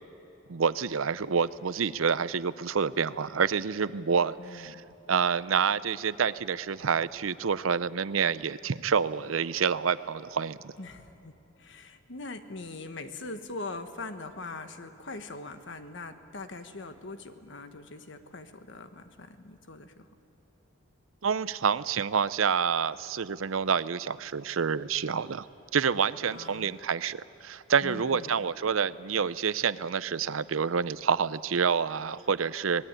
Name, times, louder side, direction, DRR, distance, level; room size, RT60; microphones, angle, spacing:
voice 1, 0.5-4.8 5.1-10.7 21.2-25.4 25.7-32.9, right 6 dB, 90° right, 16 dB, 0.6 m, -28 dB
voice 2, 4.4-4.8 10.8-20.1 26.3-26.8 27.8-28.4, left 3 dB, 65° left, 8 dB, 1.4 m, -42 dB
25.5 x 20.0 x 9.0 m, 2.9 s
head